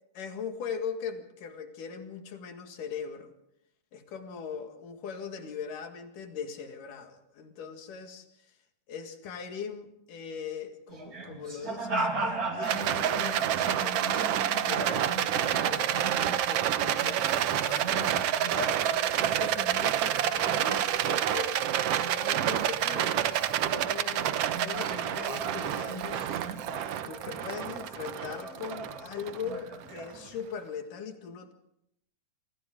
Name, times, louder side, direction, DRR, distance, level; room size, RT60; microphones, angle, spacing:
voice 1, 0.1-3.3 3.9-8.3 8.9-16.0 16.5-18.1 18.9-21.6 22.1-26.2 27.0-31.5, left 6 dB, 75° left, 5 dB, 3.5 m, -40 dB
sound 1, 10.9-21.4 21.7-30.4, right 2 dB, 25° right, 3.4 m, -39 dB
Rattle, 12.6-30.0, right 10 dB, 75° right, 1.5 m, -28 dB
28.5 x 25.0 x 3.8 m, 0.78 s
omnidirectional pair, 3.8 m